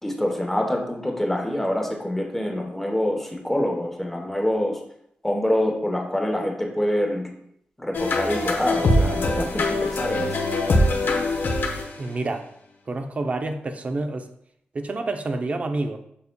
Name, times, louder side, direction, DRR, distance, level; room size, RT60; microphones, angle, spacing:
voice 1, 0.0-4.8 5.2-7.3 7.8-10.4, left 1 dB, 5° left, 1 dB, 0.9 m, -26 dB
sound 1, 7.9-12.1, left 1 dB, 70° left, 0.9 m, -23 dB
voice 2, 12.0-12.5 12.9-14.3 14.7-16.0, right 2 dB, 35° right, 6 dB, 0.5 m, -28 dB
6.8 x 6.6 x 2.2 m, 0.71 s
wide cardioid pair, 165°, 4 cm